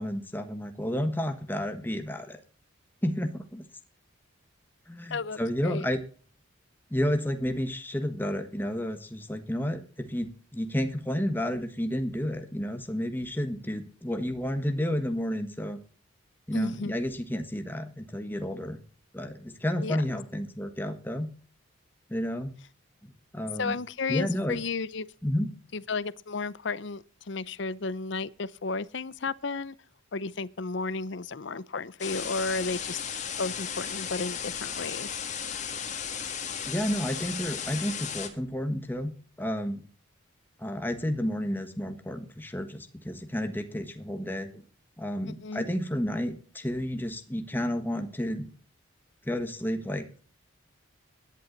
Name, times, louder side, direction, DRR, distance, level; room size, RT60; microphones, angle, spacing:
voice 1, 0.0-2.4 3.0-3.6 4.9-6.0 6.9-15.8 16.5-18.8 19.1-21.3 22.1-22.5 23.0-23.8 24.1-24.6 25.2-25.5 36.7-39.1 39.4-39.8 40.6-44.6 45.0-48.5 49.2-50.2, equal, 10° left, 1.4 m, -31 dB
voice 2, 5.1-5.9 16.5-17.0 19.8-20.2 23.6-25.1 25.7-29.7 30.1-33.0 33.4-35.1 45.4-45.6, left 4 dB, 60° left, 0.6 m, -33 dB
sound 1, 32.0-38.3, left 7 dB, 35° left, 2.2 m, -35 dB
17.0 x 11.5 x 4.0 m
head